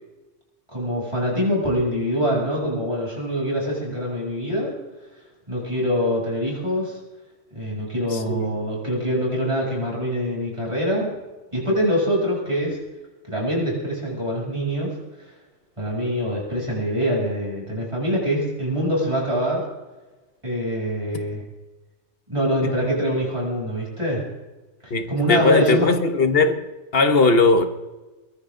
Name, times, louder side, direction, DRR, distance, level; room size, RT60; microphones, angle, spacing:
voice 1, 0.7-4.7 5.5-7.0 7.5-11.1 11.5-12.8 13.3-15.0 15.8-19.7 20.4-21.4 22.3-24.3 24.8-25.8, equal, 25° right, 7.9 m, -24 dB
voice 2, 8.1-8.5 24.9-26.6 26.9-27.7, left 3 dB, 50° left, 1.5 m, -18 dB
22.5 x 16.0 x 3.9 m
omnidirectional pair, 1.3 m